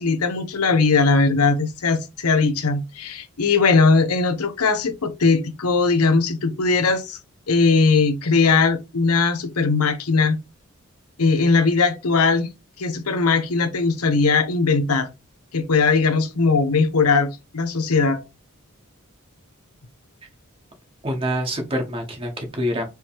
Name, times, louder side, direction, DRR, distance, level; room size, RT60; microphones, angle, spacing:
voice 1, 0.0-7.2 7.5-10.4 11.2-12.5 12.8-15.1 15.5-18.2, left 4 dB, 85° left, 0.8 m, -19 dB
voice 2, 21.0-22.9, equal, 25° right, 0.9 m, -26 dB
4.7 x 3.0 x 3.5 m
head